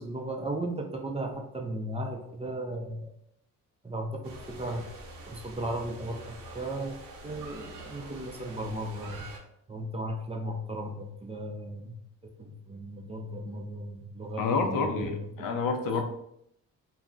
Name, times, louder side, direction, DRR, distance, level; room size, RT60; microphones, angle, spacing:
voice 1, 0.0-3.1 3.8-4.8 5.3-6.2 6.5-7.0 7.2-9.3 9.7-11.9 12.2-15.5, right 1 dB, 15° right, 2 dB, 0.5 m, -36 dB
sound 1, 4.2-9.4, right 2 dB, 70° right, 0.8 m, -45 dB
voice 2, 14.4-16.0, left 4 dB, 65° left, 5 dB, 0.6 m, -28 dB
2.4 x 2.1 x 3.7 m, 0.75 s
supercardioid pair, 65°, 36 cm